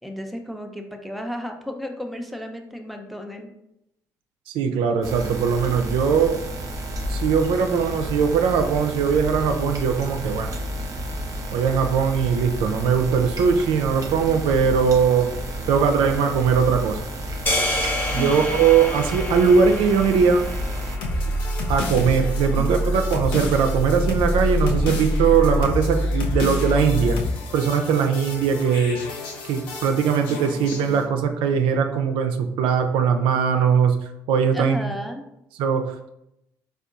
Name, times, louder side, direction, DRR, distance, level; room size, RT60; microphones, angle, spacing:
voice 1, 0.0-3.5 18.0-18.6 22.6-22.7 30.3-31.3 34.5-35.2, equal, ahead, 3 dB, 0.5 m, -34 dB
voice 2, 4.5-6.4 7.1-10.5 11.5-15.3 15.7-17.0 18.1-20.4 21.7-27.2 27.5-29.0 29.4-34.9 35.6-36.1, right 6 dB, 65° right, 6 dB, 0.3 m, -20 dB
sound 1, 5.0-21.0, equal, 35° right, 0.7 m, -31 dB
sound 2, 17.5-21.8, left 1 dB, 20° left, 0.9 m, -29 dB
sound 3, 21.0-31.0, left 1 dB, 70° left, 0.6 m, -26 dB
4.3 x 2.2 x 2.4 m, 0.82 s
hypercardioid pair, 50°, 9 cm